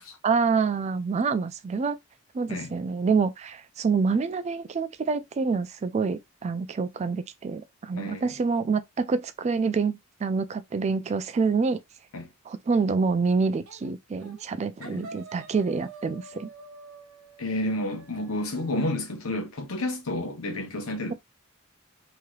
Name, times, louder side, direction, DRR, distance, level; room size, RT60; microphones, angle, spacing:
voice 1, 0.2-2.0 2.3-11.8 12.5-16.5, right 4 dB, 30° right, 0.3 m, -27 dB
voice 2, 7.9-8.3 12.1-12.3 14.8-15.1 17.4-21.1, left 1 dB, 90° left, 0.9 m, -31 dB
sound 1, 13.7-13.9 14.2-14.5 14.8-18.9, right 3 dB, 85° right, 0.9 m, -47 dB
3.1 x 2.9 x 2.3 m
head